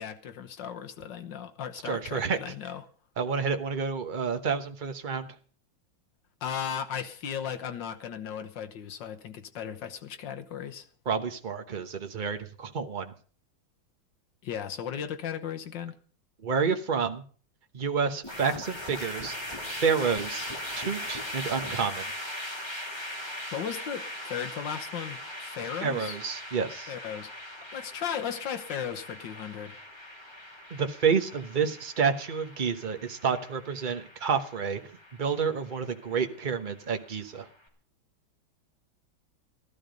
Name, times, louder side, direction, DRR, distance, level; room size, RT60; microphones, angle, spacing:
voice 1, 0.0-2.9 6.4-10.9 14.4-16.0 23.5-26.2 26.9-27.3 27.7-29.7, left 8 dB, 70° left, 1.7 m, -36 dB
voice 2, 1.8-2.4 3.2-5.3 11.1-13.1 16.4-17.2 17.7-19.3 19.8-20.5 20.7-22.1 25.8-26.9 30.7-34.8 35.2-37.5, right 6 dB, 30° right, 1.0 m, -29 dB
sound 1, 18.2-37.5, left 1 dB, 15° left, 2.6 m, -40 dB
15.0 x 12.5 x 5.2 m
omnidirectional pair, 2.1 m